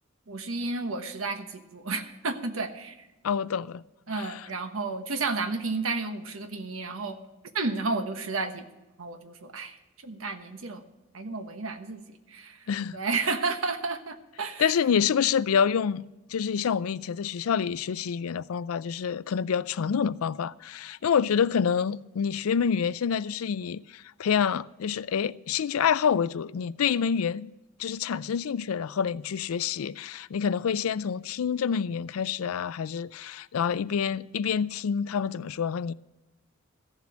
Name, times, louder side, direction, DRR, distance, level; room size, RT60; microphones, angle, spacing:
voice 1, 0.3-3.1 4.1-7.2 7.5-8.7 9.0-10.8 11.1-14.7, right 3 dB, 75° right, 1.2 m, -32 dB
voice 2, 3.2-3.8 4.1-4.3 12.7-13.0 14.6-16.0 16.3-27.5 27.8-35.9, left 7 dB, 90° left, 0.4 m, -27 dB
14.5 x 7.4 x 6.2 m
head